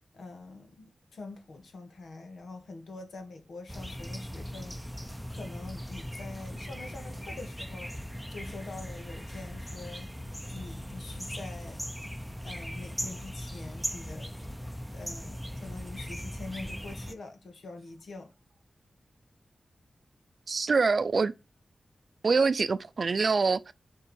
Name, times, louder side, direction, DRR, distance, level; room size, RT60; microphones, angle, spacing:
voice 1, 0.1-4.8 5.3-7.9 8.3-10.1 10.5-11.8 12.4-14.3 14.9-18.3, left 3 dB, 80° left, 1.7 m, -44 dB
sound 1, 3.7-17.1, equal, ahead, 0.7 m, -39 dB
voice 2, 20.5-21.3 22.2-23.7, right 4 dB, 60° right, 0.4 m, -25 dB
6.7 x 3.7 x 4.5 m
wide cardioid pair, 80°, 0 cm